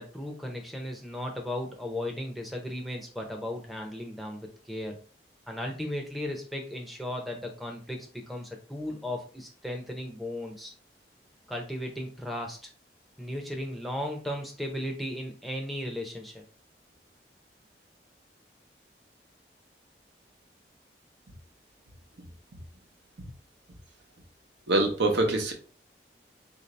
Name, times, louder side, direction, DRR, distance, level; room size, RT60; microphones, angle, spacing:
voice 1, 0.0-5.0 5.5-10.7 11.5-12.7 13.2-16.4, left 1 dB, ahead, 0 dB, 0.6 m, -36 dB
voice 2, 24.7-25.5, right 2 dB, 85° right, 3 dB, 0.8 m, -24 dB
3.7 x 2.7 x 3.2 m, 0.39 s
head